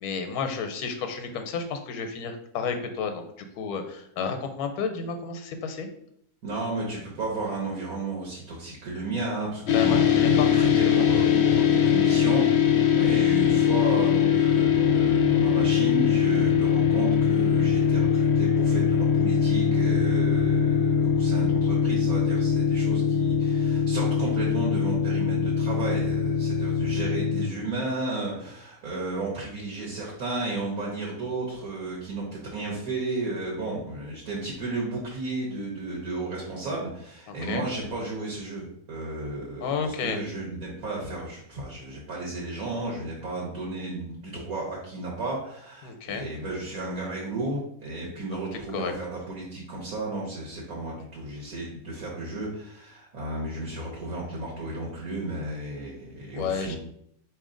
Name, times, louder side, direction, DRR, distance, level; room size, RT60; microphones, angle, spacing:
voice 1, 0.0-5.9 9.7-11.0 12.8-13.1 37.3-37.6 39.6-40.2 45.8-46.2 48.7-48.9 56.3-56.8, left 5 dB, 85° left, 6 dB, 1.1 m, -32 dB
voice 2, 6.4-56.8, right 2 dB, 70° right, -3 dB, 1.4 m, -33 dB
sound 1, 9.7-27.5, left 7 dB, 65° left, 0.7 m, -22 dB
4.3 x 3.1 x 3.7 m, 0.71 s
omnidirectional pair, 1.6 m